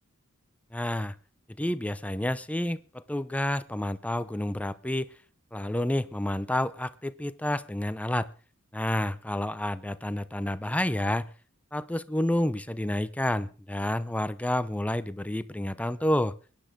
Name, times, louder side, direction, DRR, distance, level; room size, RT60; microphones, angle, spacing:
voice 1, 0.7-1.2 1.6-5.1 5.5-8.3 8.7-11.3 11.7-16.4, left 1 dB, 5° left, 13 dB, 0.7 m, -29 dB
21.5 x 10.5 x 3.8 m, 0.38 s
head